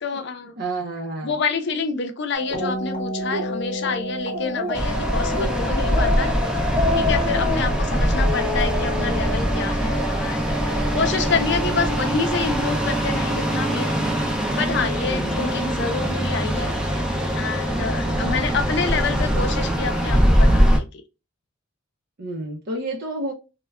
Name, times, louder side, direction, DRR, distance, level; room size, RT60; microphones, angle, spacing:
voice 1, 0.0-0.5 1.2-6.3 6.9-13.9 14.5-16.7 17.3-21.0, left 4 dB, 60° left, 0.6 m, -27 dB
voice 2, 0.6-1.3 7.4-7.9 15.1-15.4 18.0-18.4 22.2-23.3, right 2 dB, 50° right, 0.5 m, -31 dB
sound 1, 2.3-7.5 8.2-9.4, left 2 dB, 45° left, 0.9 m, -31 dB
Speech, 2.6-2.7 3.2-3.5 3.9-4.0 4.3-4.9 5.3-5.5 5.9-6.3 6.6-7.6, left 2 dB, 30° right, 0.9 m, -27 dB
sound 2, 4.7-20.8, equal, 5° right, 0.5 m, -22 dB
3.2 x 2.1 x 2.3 m
head